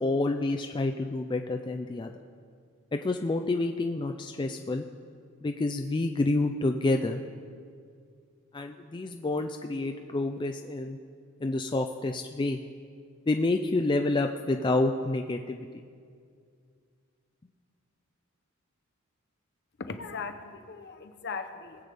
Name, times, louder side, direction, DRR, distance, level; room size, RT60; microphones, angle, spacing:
voice 1, 0.0-2.1 2.9-4.8 5.4-7.2 8.5-11.0 11.4-12.6 13.3-15.7, left 2 dB, 20° left, 5 dB, 0.3 m, -28 dB
voice 2, 19.8-21.9, left 4 dB, 55° left, 8 dB, 0.8 m, -38 dB
20.0 x 8.1 x 3.4 m, 2.2 s
head